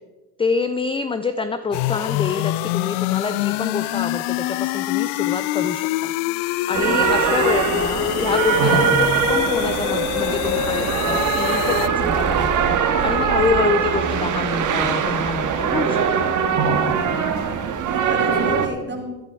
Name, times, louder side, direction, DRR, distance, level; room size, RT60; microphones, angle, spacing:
voice 1, 0.4-6.1 6.7-12.7 13.0-16.0, left 4 dB, 10° left, 11 dB, 0.5 m, -26 dB
sound 1, 1.7-11.9, left 18 dB, 65° left, 0.5 m, -25 dB
voice 2, 6.7-7.2 17.9-19.3, right 1 dB, 20° right, 2 dB, 3.1 m, -34 dB
sound 2, 6.7-18.7, right 6 dB, 35° right, 1.7 m, -21 dB
Purr, 7.7-13.5, right 5 dB, 65° right, 2.7 m, -36 dB
13.5 x 11.5 x 4.6 m, 1.2 s
hypercardioid pair, 90°, 50 cm